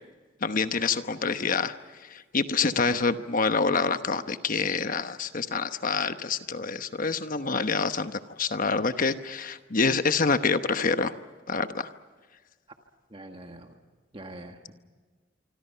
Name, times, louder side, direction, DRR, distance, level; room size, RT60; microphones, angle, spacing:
voice 1, 0.4-1.7 2.1-11.1 11.5-11.9, left 4 dB, 45° left, 10 dB, 1.0 m, -27 dB
voice 2, 13.1-13.8 14.1-14.7, right 1 dB, 30° right, 4 dB, 1.7 m, -44 dB
26.0 x 25.5 x 5.7 m, 1.4 s
head